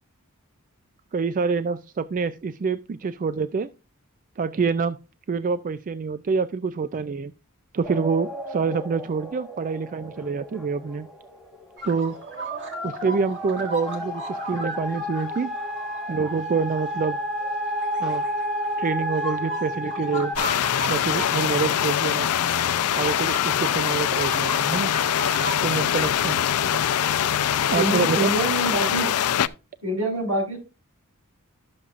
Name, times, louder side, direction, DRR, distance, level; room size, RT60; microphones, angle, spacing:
voice 1, 1.1-3.7 4.4-5.0 5.3-7.3 7.7-11.1 11.8-12.2 12.8-15.5 16.1-17.2 18.0-18.2 18.8-20.3 20.9-22.3 23.0-24.9 25.6-26.4 27.7-28.3, right 5 dB, 35° right, 12 dB, 0.4 m, -26 dB
sound 1, 7.8-11.6 12.1-20.4, equal, 5° right, 1.5 m, -31 dB
sound 2, 11.8-17.0 17.7-18.7 19.1-21.3 21.8-21.9 22.4-22.5 23.1-25.8, right 2 dB, 55° right, 1.9 m, -36 dB
sound 3, 20.4-29.5, left 9 dB, 80° left, 0.4 m, -23 dB
voice 2, 27.7-29.1 29.8-30.6, right 2 dB, 80° right, 1 dB, 5.6 m, -25 dB
12.0 x 6.9 x 2.5 m, 0.31 s
head